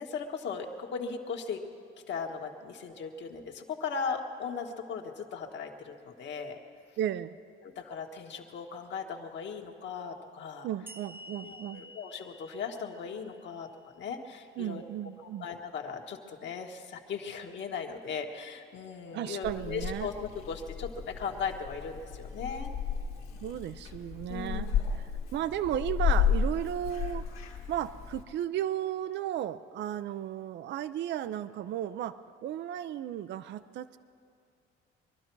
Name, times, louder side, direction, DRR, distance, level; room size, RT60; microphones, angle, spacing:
voice 1, 0.0-1.6 2.1-6.6 7.6-10.7 11.4-13.7 13.9-14.8 15.2-22.7 24.3-24.9, left 5 dB, 60° left, 2 dB, 1.5 m, -38 dB
voice 2, 7.0-7.4 10.6-11.8 14.6-15.5 19.1-20.1 23.4-24.7 24.9-25.0 25.3-27.2 27.7-34.0, right 11 dB, 60° right, 14 dB, 0.5 m, -34 dB
sound 1, 10.9-14.2, left 1 dB, 10° right, 0.7 m, -51 dB
Purr / Meow, 19.4-28.2, left 7 dB, 85° left, 1.7 m, -33 dB
23.0 x 12.0 x 4.6 m, 2.5 s
cardioid pair, 110°, 21 cm